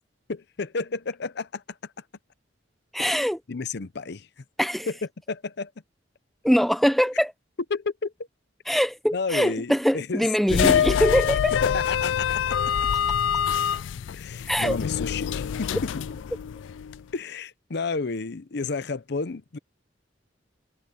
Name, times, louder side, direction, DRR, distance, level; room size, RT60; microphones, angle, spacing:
voice 1, 0.3-1.8 3.0-4.3 4.9-5.0 5.3-5.7 7.7-8.1 9.1-11.0 11.6-12.7 14.1-15.9 17.1-19.6, left 4 dB, 60° left, 0.7 m, -31 dB
voice 2, 2.9-3.4 4.6-4.9 6.4-7.3 8.7-11.6 14.5-14.8, equal, ahead, 0.7 m, -23 dB
sound 1, 10.5-17.0, left 8 dB, 85° left, 0.4 m, -25 dB
head